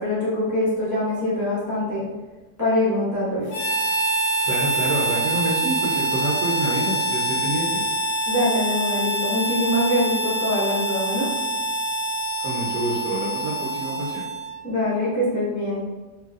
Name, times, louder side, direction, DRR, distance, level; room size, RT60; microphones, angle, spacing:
voice 1, 0.0-2.0 2.6-3.5 8.3-11.3 14.6-15.8, left 1 dB, 10° left, -11 dB, 0.9 m, -23 dB
Harmonica, 3.5-14.6, right 2 dB, 45° left, 1.1 m, -25 dB
voice 2, 4.4-7.8 12.4-14.3, right 1 dB, 75° right, -5 dB, 1.2 m, -27 dB
4.1 x 3.1 x 2.4 m, 1.2 s
omnidirectional pair, 1.9 m